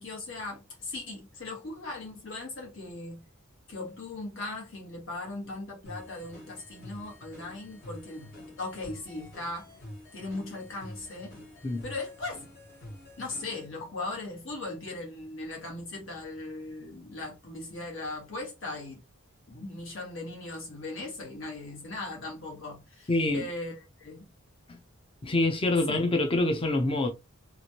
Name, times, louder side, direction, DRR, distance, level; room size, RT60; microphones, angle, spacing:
voice 1, 0.0-3.2 3.7-9.7 10.1-11.4 11.8-12.4 13.2-19.0 19.5-24.3, left 2 dB, 65° left, 1.4 m, -38 dB
sound 1, 5.9-13.7, left 1 dB, 50° left, 1.4 m, -47 dB
voice 2, 23.1-23.5 24.7-24.8 25.2-27.1, left 2 dB, 25° left, 0.4 m, -26 dB
3.1 x 2.5 x 2.7 m
head